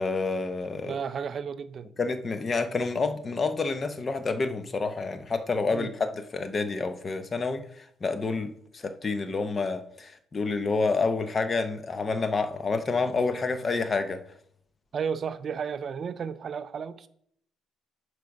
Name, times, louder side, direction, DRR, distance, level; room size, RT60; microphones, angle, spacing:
voice 1, 0.0-1.0 2.0-14.2, left 4 dB, 25° left, 0.6 m, -28 dB
voice 2, 0.8-1.9 5.7-5.9 14.9-17.1, right 6 dB, 35° right, 0.4 m, -33 dB
10.5 x 4.8 x 5.2 m
cardioid pair, 170°, 0 cm